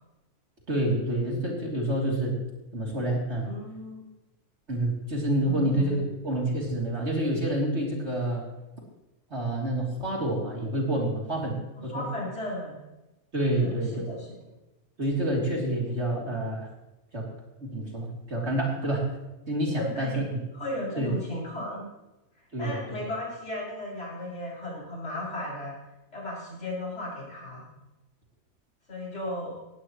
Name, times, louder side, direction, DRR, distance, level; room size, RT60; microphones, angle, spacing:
voice 1, 0.7-2.4 2.7-3.5 4.7-8.4 9.3-11.6 11.8-12.0 13.3-14.1 15.0-16.7 17.1-17.2 17.7-19.1 19.5-20.2 21.0-21.1 22.5-23.0, right 1 dB, 50° right, -2 dB, 3.6 m, -28 dB
voice 2, 3.5-4.0 5.4-6.0 11.8-12.8 13.6-14.4 19.8-20.2 20.5-21.9 22.6-25.7 26.1-27.6 28.9-29.5, left 1 dB, 55° left, -6 dB, 7.4 m, -35 dB
18.0 x 16.0 x 3.2 m, 1.0 s
omnidirectional pair, 1.5 m